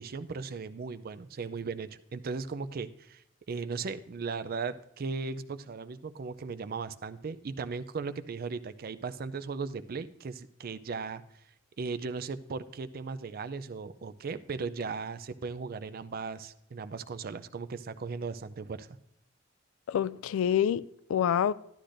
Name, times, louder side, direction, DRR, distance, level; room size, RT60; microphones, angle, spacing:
voice 1, 0.0-3.2 3.5-11.2 11.8-18.9, right 4 dB, 45° right, 0.4 m, -37 dB
voice 2, 19.9-21.5, left 9 dB, 85° left, 0.3 m, -27 dB
11.5 x 11.5 x 2.5 m
head